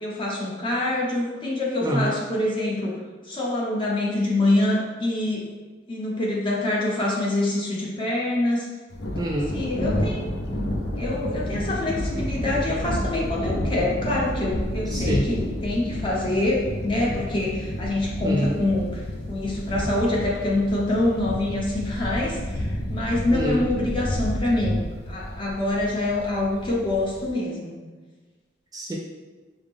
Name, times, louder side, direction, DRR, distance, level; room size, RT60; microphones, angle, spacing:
voice 1, 0.0-2.9 3.2-5.4 5.9-8.7 9.5-10.3 11.0-19.0 19.3-27.7, left 1 dB, 30° left, -5 dB, 0.9 m, -25 dB
voice 2, 1.8-2.1 9.2-9.6 14.9-15.3 18.2-18.6 23.3-23.7 28.7-29.0, right 1 dB, 20° right, -2 dB, 0.3 m, -26 dB
Thunder, 8.9-27.3, left 1 dB, 60° left, 0.5 m, -30 dB
4.9 x 2.0 x 3.5 m, 1.3 s
head